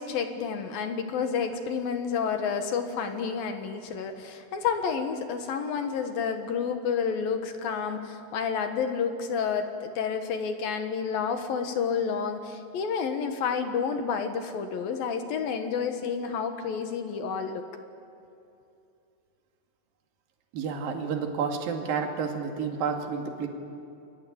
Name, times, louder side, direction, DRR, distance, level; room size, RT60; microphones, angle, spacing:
voice 1, 0.0-17.7, left 6 dB, 65° left, 7 dB, 2.9 m, -30 dB
voice 2, 20.5-23.5, right 6 dB, 55° right, 3 dB, 3.7 m, -30 dB
28.0 x 22.5 x 8.7 m, 2.7 s
omnidirectional pair, 5.2 m